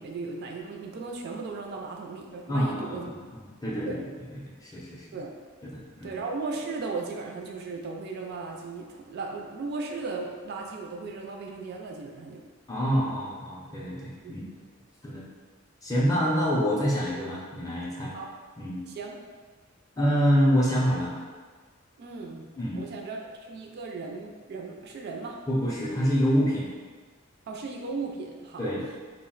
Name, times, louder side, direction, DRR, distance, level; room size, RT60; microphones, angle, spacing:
voice 1, 0.0-3.1 3.8-4.0 5.1-5.3 6.0-12.4 14.2-14.3 18.1-18.3 18.9-19.2 22.0-22.4 22.7-25.4 27.5-28.7, right 4 dB, 50° right, 1 dB, 0.3 m, -36 dB
voice 2, 2.5-4.0 4.4-5.1 5.6-6.1 12.7-14.4 15.0-15.2 15.8-18.1 18.6-18.8 20.0-21.1 22.6-22.8 25.5-26.7 28.6-28.8, equal, 15° left, -5 dB, 0.5 m, -26 dB
2.3 x 2.1 x 3.8 m, 1.5 s
head